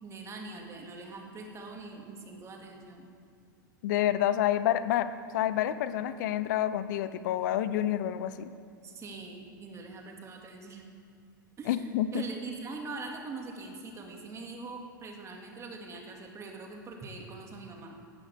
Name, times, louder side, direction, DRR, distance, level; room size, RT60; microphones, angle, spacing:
voice 1, 0.0-3.1 8.8-10.8 11.6-18.0, right 3 dB, 25° right, 1 dB, 2.1 m, -43 dB
voice 2, 3.8-5.1 5.3-8.5 11.7-12.3, left 12 dB, 60° left, 13 dB, 0.6 m, -28 dB
16.5 x 11.0 x 3.5 m, 2.3 s
hypercardioid pair, 95°, 11 cm